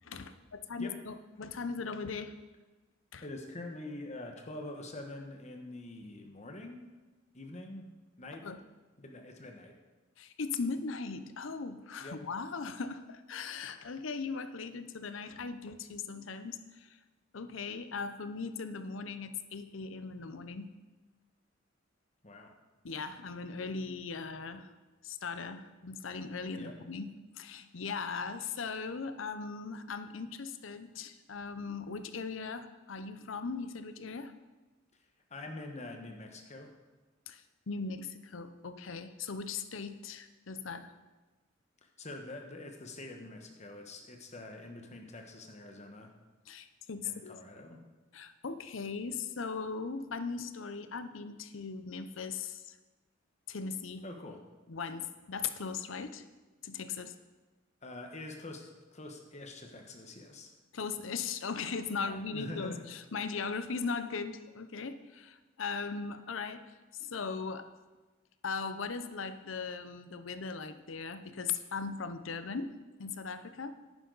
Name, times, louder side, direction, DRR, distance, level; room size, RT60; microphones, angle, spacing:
voice 1, 0.0-2.3 3.1-3.2 8.4-8.6 10.2-17.0 17.3-20.7 22.8-24.7 25.0-34.3 37.3-40.9 46.5-47.4 48.1-52.8 53.5-54.0 54.7-56.3 56.6-57.2 60.7-67.7 68.4-73.7, left 5 dB, 80° left, 10 dB, 0.7 m, -39 dB
voice 2, 3.2-6.9 7.3-7.9 8.2-8.4 9.0-9.8 12.0-12.2 22.2-22.5 26.5-26.7 35.3-36.7 41.8-46.1 47.0-47.8 54.0-54.4 57.8-60.6 62.0-62.9, left 2 dB, 35° left, 3 dB, 1.2 m, -45 dB
10.5 x 9.9 x 4.0 m, 1.2 s
head